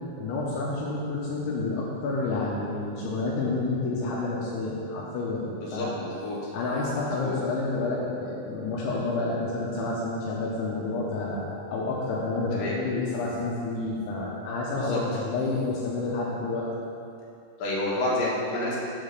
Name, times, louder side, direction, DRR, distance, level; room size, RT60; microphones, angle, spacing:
voice 1, 0.2-5.9 6.5-16.7, left 3 dB, 85° left, -5 dB, 2.9 m, -29 dB
voice 2, 5.6-6.4 7.2-7.4 12.5-12.8 14.7-15.0 17.6-18.8, left 1 dB, 65° left, -6 dB, 3.0 m, -29 dB
8.1 x 3.8 x 6.5 m, 2.5 s
omnidirectional pair, 4.6 m